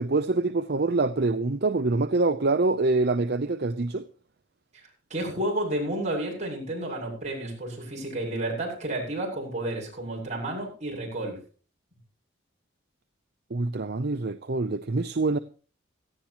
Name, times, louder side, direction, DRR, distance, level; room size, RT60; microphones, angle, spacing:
voice 1, 0.0-4.0 13.5-15.4, right 3 dB, 50° right, 0.7 m, -25 dB
voice 2, 4.7-11.4, right 1 dB, 35° right, 7.1 m, -31 dB
17.5 x 14.5 x 2.9 m
head